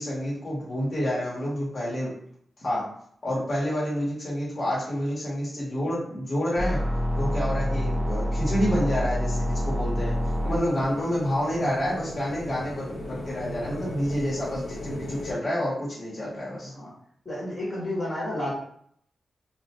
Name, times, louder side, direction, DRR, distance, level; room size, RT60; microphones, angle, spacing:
voice 1, 0.0-2.1 2.6-2.8 3.2-6.8 7.2-10.2 10.4-16.7, equal, 55° left, -7 dB, 1.2 m, -28 dB
sound 1, 6.6-10.6, equal, 5° left, 0.6 m, -26 dB
sound 2, 9.2-15.3, left 1 dB, 85° left, 0.8 m, -38 dB
voice 2, 16.6-16.9 17.2-18.5, left 1 dB, 40° left, -7 dB, 1.2 m, -31 dB
2.4 x 2.2 x 2.9 m, 0.65 s
cardioid pair, 55°, 0 cm